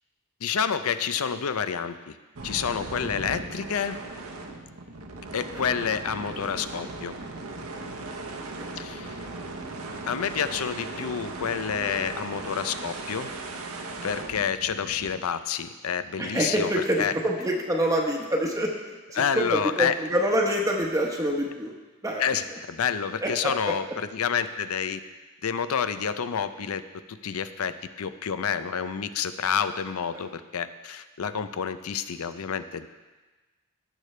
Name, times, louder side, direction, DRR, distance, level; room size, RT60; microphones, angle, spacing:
voice 1, 0.4-2.1 2.4-4.0 5.3-7.1 8.8-9.3 10.1-13.3 14.0-17.1 19.1-20.0 22.2-25.0 25.4-26.8 27.1-32.9, left 7 dB, 80° left, 12 dB, 0.5 m, -29 dB
sound 1, 2.4-15.2, right 2 dB, 80° right, 1.0 m, -38 dB
voice 2, 16.2-18.7 19.1-21.7 22.0-22.2 23.2-23.7 30.1-30.2, equal, 15° right, 0 dB, 0.9 m, -26 dB
17.0 x 6.7 x 3.3 m, 1.2 s
head